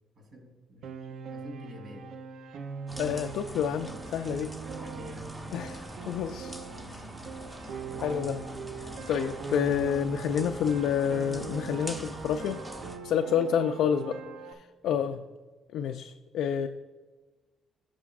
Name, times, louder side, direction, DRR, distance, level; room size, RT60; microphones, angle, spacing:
voice 1, 0.1-2.1 4.6-6.0 6.7-7.4 7.8-8.4 13.7-13.9 14.8-15.2, equal, 60° right, 0 dB, 3.1 m, -49 dB
Piano, 0.8-14.5, right 5 dB, 75° right, 0.5 m, -41 dB
sound 1, 2.9-13.0, equal, 10° right, 1.0 m, -43 dB
voice 2, 3.0-4.5 5.5-5.8 6.1-6.6 8.0-8.4 9.1-12.6 13.0-14.2 14.5-15.2 15.7-16.7, left 8 dB, 80° left, 6 dB, 0.4 m, -28 dB
16.0 x 6.1 x 2.4 m, 1.3 s
cardioid pair, 90°, 0 cm